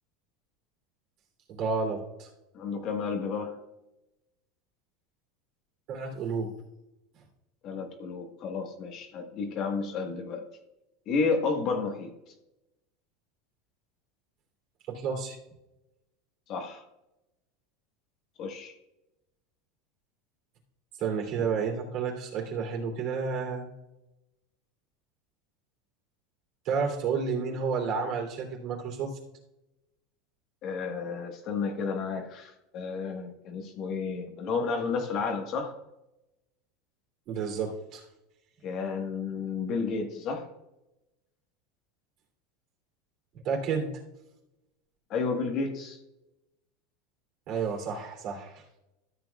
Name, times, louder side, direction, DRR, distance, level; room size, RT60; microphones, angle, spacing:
voice 1, 1.5-2.3 5.9-6.5 14.9-15.4 21.0-23.7 26.6-29.2 37.3-38.0 43.4-43.9 47.5-48.5, right 5 dB, 50° right, 1 dB, 3.0 m, -31 dB
voice 2, 2.5-3.5 7.6-10.4 11.1-12.1 16.5-16.8 18.4-18.7 30.6-35.7 38.6-40.5 45.1-46.0, left 4 dB, 45° left, 4 dB, 1.4 m, -31 dB
13.5 x 8.0 x 2.3 m, 0.93 s
supercardioid pair, 140°, 0 cm